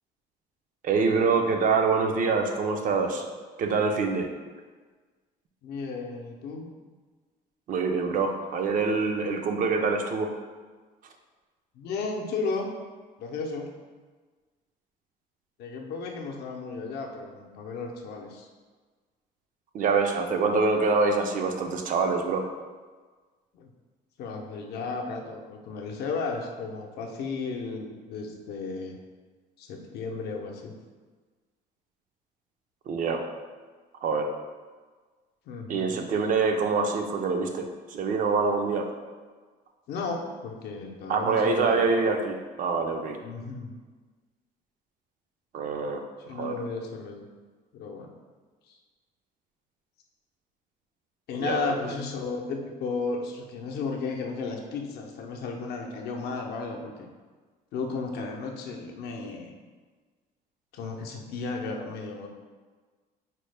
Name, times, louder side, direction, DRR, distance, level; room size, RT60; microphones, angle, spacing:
voice 1, 0.8-3.3 3.6-4.3 7.7-10.3 19.7-22.5 32.9-33.2 34.0-34.3 35.7-38.9 41.1-43.2 45.5-46.0 46.3-46.6 51.4-51.8, right 4 dB, 50° right, 4 dB, 0.4 m, -25 dB
voice 2, 5.6-6.7 11.7-12.7 13.2-13.7 15.6-18.5 23.5-23.7 24.2-29.0 29.6-30.7 35.5-36.0 39.9-41.9 43.2-43.7 46.3-47.3 47.7-48.1 48.7-48.8 51.3-57.1 57.7-59.5 60.7-62.3, left 4 dB, 70° left, 1 dB, 0.6 m, -34 dB
4.3 x 2.0 x 3.2 m, 1.4 s
cardioid pair, 110°, 17 cm